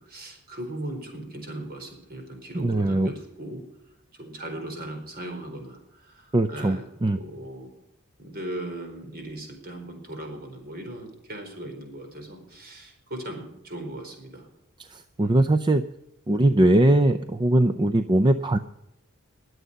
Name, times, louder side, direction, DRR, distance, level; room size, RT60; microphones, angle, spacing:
voice 1, 0.0-3.6 4.1-6.9 7.1-7.7 8.2-14.5 15.2-15.5, right 1 dB, 45° right, 4 dB, 4.4 m, -38 dB
voice 2, 2.6-3.1 6.3-7.2 14.9-15.8 16.3-18.6, right 1 dB, 20° right, 11 dB, 0.5 m, -21 dB
21.5 x 8.0 x 5.4 m, 0.85 s
head